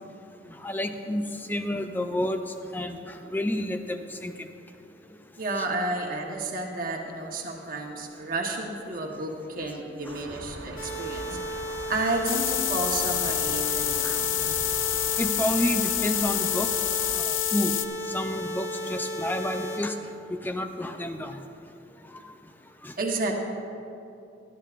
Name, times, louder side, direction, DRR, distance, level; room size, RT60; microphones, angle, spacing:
voice 1, 0.4-2.4 2.7-4.5 5.6-5.7 14.0-14.2 15.2-16.7 17.2-17.7 18.1-20.0 20.3-21.4 22.8-22.9, left 1 dB, 10° left, 7 dB, 0.4 m, -30 dB
voice 2, 5.4-11.4 11.9-14.3 23.0-23.4, right 2 dB, 45° right, 0 dB, 1.2 m, -31 dB
sound 1, 10.1-17.2, right 1 dB, 70° right, 1.1 m, -42 dB
sound 2, 10.8-19.8, equal, 40° left, 1.5 m, -34 dB
sound 3, 12.2-17.8, left 12 dB, 85° left, 0.5 m, -27 dB
17.5 x 12.0 x 2.5 m, 2.7 s
head